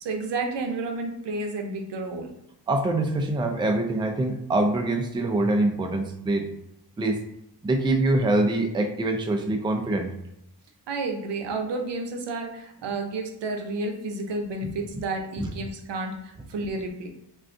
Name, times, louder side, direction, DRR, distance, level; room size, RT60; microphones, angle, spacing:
voice 1, 0.0-2.3 10.9-17.1, right 3 dB, 85° right, 3 dB, 0.7 m, -31 dB
voice 2, 2.7-6.5 7.0-7.2 7.6-10.1 15.4-15.5, right 2 dB, 10° right, 4 dB, 0.3 m, -24 dB
2.5 x 2.3 x 3.7 m, 0.81 s
wide cardioid pair, 85°, 41 cm